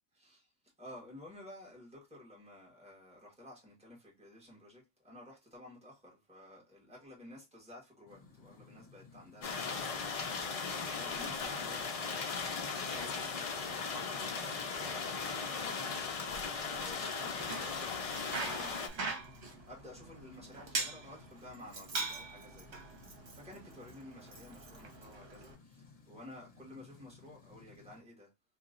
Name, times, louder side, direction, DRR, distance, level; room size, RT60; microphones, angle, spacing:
voice 1, 0.1-0.5 0.8-14.5 14.8-22.9 23.3-28.3, left 1 dB, 5° right, 1.4 m, -53 dB
sound 1, 8.1-28.0, left 4 dB, 45° left, 0.8 m, -59 dB
sound 2, 9.4-18.9, left 5 dB, 60° left, 0.3 m, -37 dB
Bicycle, 17.2-25.5, right 3 dB, 60° right, 1.2 m, -42 dB
3.0 x 2.4 x 3.6 m
omnidirectional pair, 1.3 m